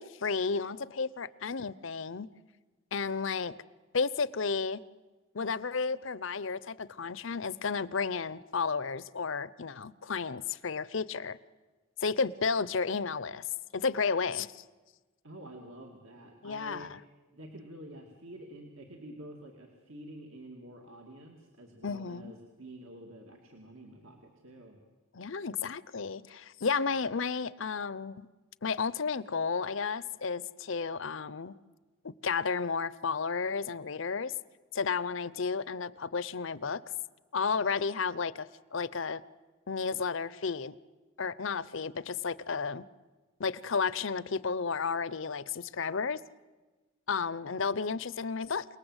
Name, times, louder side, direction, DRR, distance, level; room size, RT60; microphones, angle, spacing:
voice 1, 0.0-2.3 2.9-3.5 3.9-4.8 5.3-11.4 12.0-13.5 13.7-14.6 16.4-17.0 21.8-22.3 25.1-28.3 28.6-31.5 32.0-34.3 34.7-36.8 37.3-39.2 39.7-40.7 41.2-42.8 43.4-46.2 47.1-48.7, left 5 dB, 65° left, 19 dB, 0.7 m, -32 dB
voice 2, 15.2-16.9 17.3-24.8, right 1 dB, 75° right, 2 dB, 2.5 m, -48 dB
28.5 x 19.5 x 8.1 m, 1.3 s
head